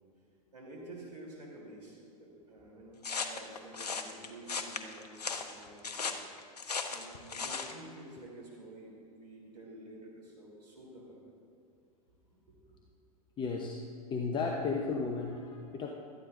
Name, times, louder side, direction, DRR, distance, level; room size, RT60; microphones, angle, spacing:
voice 1, 0.5-6.2 6.9-11.2 12.3-12.8, right 1 dB, 85° right, -2 dB, 3.4 m, -50 dB
sound 1, 3.0-7.8, left 5 dB, 85° left, 0.9 m, -37 dB
voice 2, 13.4-13.8 14.1-15.9, left 4 dB, 25° left, 2 dB, 0.9 m, -34 dB
17.0 x 12.5 x 2.6 m, 2.4 s
hypercardioid pair, 100°, 20 cm